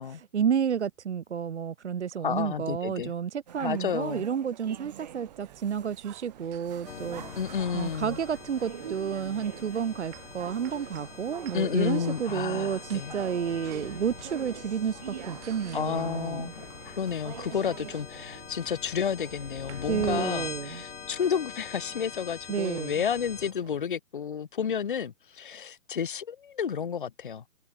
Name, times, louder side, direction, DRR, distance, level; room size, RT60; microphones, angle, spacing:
voice 1, 0.3-7.4 7.7-16.5 19.9-20.8 22.5-23.0, right 7 dB, 50° right, 0.8 m, -31 dB
voice 2, 2.2-3.1 3.6-4.3 7.4-8.2 11.5-13.1 15.7-27.4, left 7 dB, 35° left, 1.0 m, -31 dB
sound 1, 3.5-18.0, right 9 dB, 30° right, 2.0 m, -46 dB
sound 2, 4.8-23.9, right 30 dB, 10° right, 1.4 m, -52 dB
sound 3, 6.9-23.5, left 7 dB, 55° left, 2.8 m, -43 dB
hypercardioid pair, 175°, 43 cm